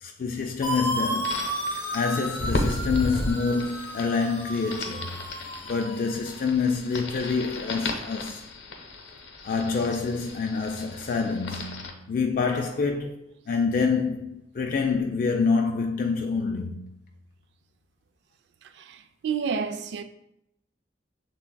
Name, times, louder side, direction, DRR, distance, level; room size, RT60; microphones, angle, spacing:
voice 1, 0.0-1.5 1.8-5.1 5.7-8.4 9.4-16.8, left 4 dB, 50° left, 0.3 m, -27 dB
sound 1, 0.6-6.4, right 1 dB, 15° left, 0.7 m, -33 dB
sound 2, 1.2-11.9, left 2 dB, 75° left, 0.7 m, -35 dB
voice 2, 18.9-20.0, right 6 dB, 70° right, 0.4 m, -30 dB
6.8 x 3.4 x 2.2 m
head